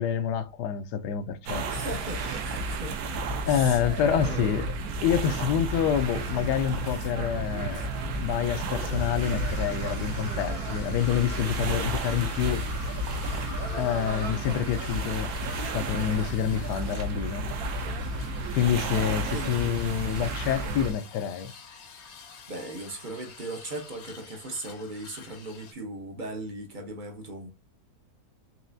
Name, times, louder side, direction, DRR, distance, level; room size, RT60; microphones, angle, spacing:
voice 1, 0.0-1.7 2.7-2.8 3.5-4.7 5.0-12.7 13.7-17.5 18.5-21.5, left 9 dB, 80° left, 1.2 m, -27 dB
sound 1, 1.5-20.9, right 2 dB, 70° right, 1.1 m, -32 dB
voice 2, 1.7-3.0 3.4-4.0 4.3-4.5 19.3-19.8 22.5-27.5, right 2 dB, 50° right, 0.6 m, -38 dB
sound 2, 4.0-19.7, right 1 dB, 85° right, 1.2 m, -40 dB
sound 3, 6.1-25.7, left 6 dB, 55° left, 0.9 m, -47 dB
4.4 x 3.1 x 2.6 m
omnidirectional pair, 1.8 m